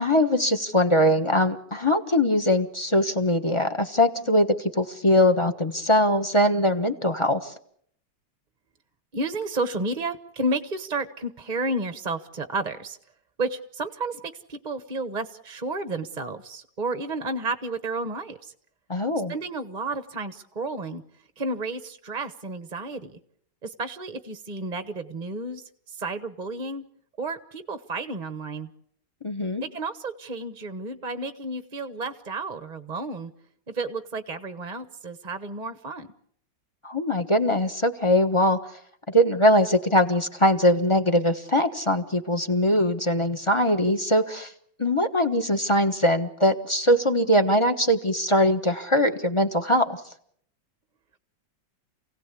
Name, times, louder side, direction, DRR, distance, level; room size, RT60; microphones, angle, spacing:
voice 1, 0.0-7.5 18.9-19.3 29.2-29.6 36.8-38.6 39.1-44.5 44.8-50.0, left 1 dB, 20° left, 9 dB, 1.1 m, -22 dB
voice 2, 9.1-13.0 13.4-18.5 19.3-21.0 21.4-23.2 23.6-26.8 27.2-28.7 29.6-33.3 33.7-36.1, right 2 dB, 30° right, 11 dB, 0.9 m, -31 dB
28.0 x 17.0 x 8.4 m, 0.67 s
omnidirectional pair, 2.0 m